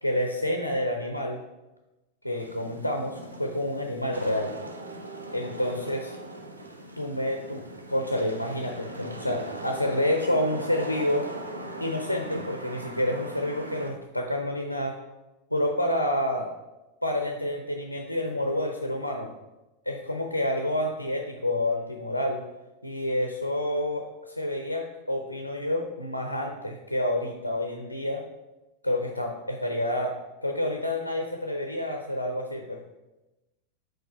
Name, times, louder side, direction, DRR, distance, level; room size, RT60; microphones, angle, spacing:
voice 1, 0.0-1.4 2.2-4.5 5.3-6.1 7.0-11.3 11.8-15.0 15.5-16.5 17.0-19.3 19.9-22.4 22.8-28.2 28.8-30.1 30.4-32.8, left 1 dB, 90° left, 3 dB, 0.5 m, -28 dB
Wind / Rain, 2.4-13.9, right 2 dB, 80° right, 0.6 m, -40 dB
5.3 x 3.8 x 5.3 m, 1.0 s
figure-of-eight pair, 90°, 0 cm